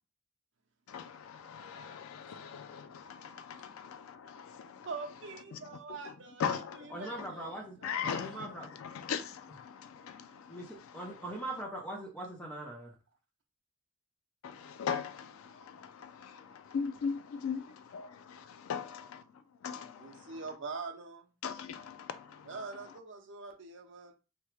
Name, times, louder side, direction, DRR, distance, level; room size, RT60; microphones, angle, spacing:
voice 1, 0.9-4.9 5.5-6.1 6.4-7.4 7.8-11.4 14.4-18.2 18.7-20.4 21.4-23.0, left 6 dB, 85° left, 0.3 m, -40 dB
voice 2, 4.9-6.4 6.7-8.3 20.0-21.3 22.5-24.1, right 4 dB, 60° right, 0.6 m, -44 dB
voice 3, 6.9-7.8 8.0-8.8 10.5-12.9, right 1 dB, 5° left, 0.6 m, -41 dB
2.9 x 2.3 x 3.2 m
head